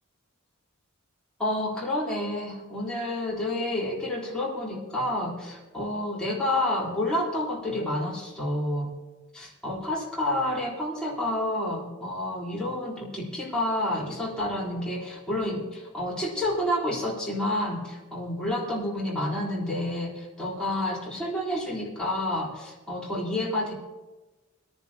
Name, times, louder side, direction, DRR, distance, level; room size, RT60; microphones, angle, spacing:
voice 1, 1.4-8.9 9.3-23.7, left 1 dB, 5° left, -7 dB, 3.8 m, -29 dB
22.5 x 10.5 x 2.9 m, 1.2 s
head